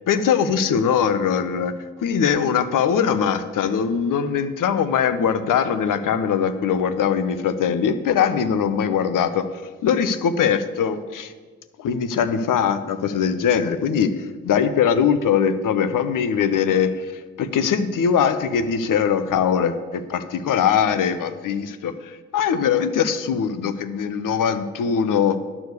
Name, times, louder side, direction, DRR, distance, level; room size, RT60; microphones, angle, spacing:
voice 1, 0.1-1.7 2.0-11.3 11.8-25.4, left 7 dB, 65° left, 12 dB, 0.8 m, -21 dB
11.0 x 4.9 x 8.1 m, 1.4 s
hypercardioid pair, 40°, 35 cm